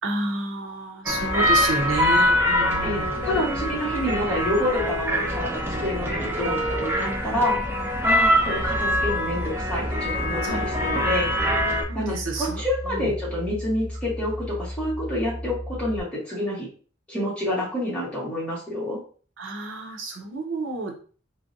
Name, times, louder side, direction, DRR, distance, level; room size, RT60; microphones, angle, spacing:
voice 1, 0.0-3.1 10.4-10.7 11.8-12.6 12.9-13.1 19.4-20.9, right 2 dB, 90° right, 1 dB, 0.9 m, -30 dB
sound 1, 1.1-11.8, equal, 10° right, 0.5 m, -24 dB
voice 2, 2.8-7.6 8.0-11.3 11.9-16.7 17.1-19.0, left 1 dB, 5° left, -8 dB, 1.9 m, -28 dB
sound 2, 8.6-16.0, left 1 dB, 35° left, 1.2 m, -35 dB
3.5 x 3.3 x 2.7 m, 0.40 s
head